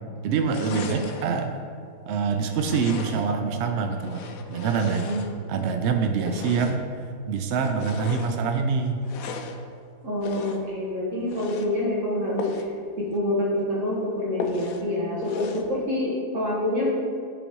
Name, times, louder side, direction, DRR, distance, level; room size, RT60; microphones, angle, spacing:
voice 1, 0.2-1.5 2.1-5.1 5.5-6.9 7.3-9.0, right 5 dB, 75° right, 5 dB, 0.6 m, -25 dB
sound 1, 0.5-1.3 2.5-3.4 4.0-5.6 6.2-6.9 7.5-8.4 9.0-9.6 10.2-10.7 11.2-11.7 12.4-12.7 13.1-13.2 13.6-13.7 14.4-14.9 15.2-15.7, left 5 dB, 65° left, 1.0 m, -37 dB
voice 2, 10.0-12.7 13.0-16.9, left 1 dB, 50° right, -6 dB, 1.6 m, -27 dB
10.0 x 4.0 x 4.6 m, 2.2 s
omnidirectional pair, 1.7 m